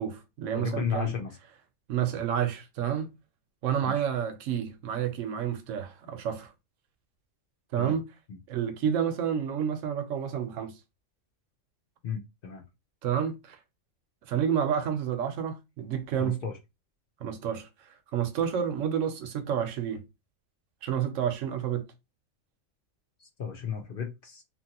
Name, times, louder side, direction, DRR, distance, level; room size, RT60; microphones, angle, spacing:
voice 1, 0.0-1.1 1.9-3.1 3.6-6.5 7.7-8.0 8.5-10.8 13.0-13.6 14.3-16.4 17.2-20.0 20.8-21.9, right 8 dB, 85° right, 1.0 m, -30 dB
voice 2, 0.5-1.3 3.8-4.1 7.8-8.0 8.3-8.4 12.0-12.6 16.2-16.5 23.2-24.4, left 6 dB, 55° left, 0.7 m, -34 dB
2.8 x 2.5 x 2.8 m
omnidirectional pair, 1.3 m